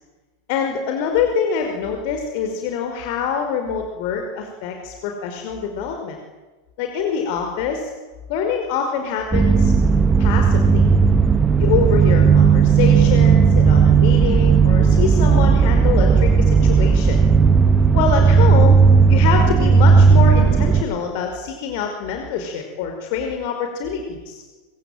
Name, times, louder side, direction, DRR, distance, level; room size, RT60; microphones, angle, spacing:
voice 1, 0.5-6.2 6.8-7.9 8.3-9.7 10.2-10.9 11.6-17.2 17.9-18.8 19.1-24.4, left 6 dB, 45° left, 4 dB, 4.9 m, -25 dB
sound 1, 9.3-20.8, right 5 dB, 15° right, 1.3 m, -14 dB
26.0 x 25.0 x 9.0 m, 1.2 s
figure-of-eight pair, 90°, 0 cm